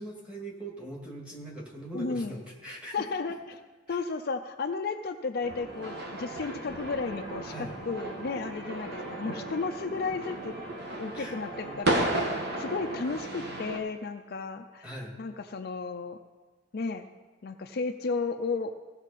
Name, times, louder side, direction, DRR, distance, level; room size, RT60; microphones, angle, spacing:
voice 1, 0.0-3.1 3.9-4.0 7.4-7.8 11.1-11.8 14.8-15.2, right 1 dB, 5° right, -3 dB, 1.9 m, -41 dB
voice 2, 1.9-2.4 2.9-3.6 3.9-10.6 11.0-14.9 15.2-16.2 16.7-17.1 17.4-18.7, left 4 dB, 50° left, 6 dB, 0.4 m, -33 dB
sound 1, 5.4-13.8, right 1 dB, 55° right, 1.3 m, -34 dB
16.0 x 6.3 x 4.1 m, 1.3 s
head